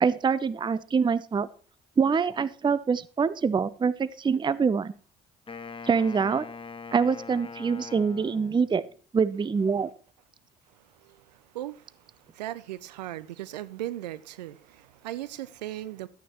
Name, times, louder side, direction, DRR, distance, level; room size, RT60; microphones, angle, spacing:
voice 1, 0.0-1.5 2.0-4.9 5.8-6.4 6.9-8.8 9.1-9.9, right 5 dB, 20° right, 0.5 m, -25 dB
Wind instrument woodwind instrument, 5.5-8.9, left 4 dB, 25° left, 1.3 m, -42 dB
voice 2, 11.0-16.1, right 14 dB, 85° right, 0.5 m, -38 dB
12.0 x 9.1 x 3.0 m
hypercardioid pair, 50°, 21 cm